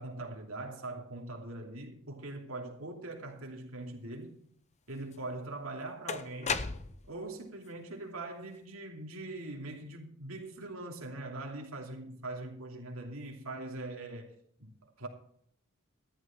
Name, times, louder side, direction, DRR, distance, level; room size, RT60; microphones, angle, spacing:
voice 1, 0.0-4.4 4.9-6.6 7.1-14.3 14.6-15.1, right 2 dB, 65° right, 2.9 m, -42 dB
sound 1, 5.1-5.2 6.1-7.2, left 5 dB, 30° left, 0.7 m, -34 dB
13.5 x 11.0 x 4.4 m
head